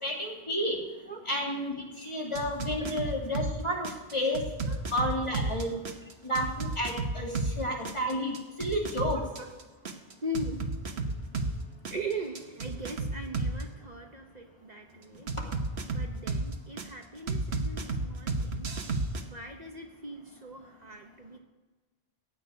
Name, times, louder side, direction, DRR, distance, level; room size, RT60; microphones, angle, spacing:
voice 1, 0.0-0.8 1.3-4.4 4.9-5.7 6.2-7.3 7.6-9.2, equal, 30° left, -1 dB, 2.7 m, -31 dB
sound 1, 2.3-3.5 3.8-7.5 7.8-11.5 11.8-13.6 15.3-16.8 17.3-19.2, right 3 dB, 80° right, 1.5 m, -32 dB
voice 2, 9.1-9.5 10.2-10.6 11.9-15.4 15.9-18.8 19.3-21.4, right 1 dB, 45° right, 3 dB, 1.1 m, -40 dB
15.5 x 6.2 x 9.5 m, 1.3 s
omnidirectional pair, 1.1 m